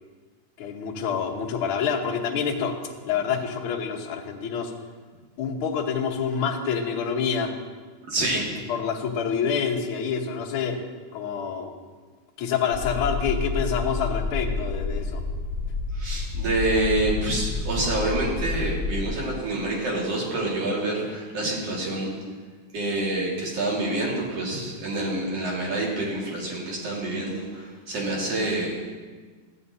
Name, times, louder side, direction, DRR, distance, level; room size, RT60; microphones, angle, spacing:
voice 1, 0.6-2.8 3.0-4.7 5.4-7.5 8.2-8.4 8.7-10.8 11.1-11.7 12.4-15.2, left 6 dB, 60° left, -4 dB, 1.5 m, -27 dB
voice 2, 8.1-8.4 16.0-22.2 22.7-28.8, right 2 dB, 55° right, -3 dB, 2.9 m, -27 dB
sound 1, 12.7-19.1, left 3 dB, 5° right, 0.4 m, -29 dB
14.5 x 8.9 x 2.7 m, 1.5 s
omnidirectional pair, 3.6 m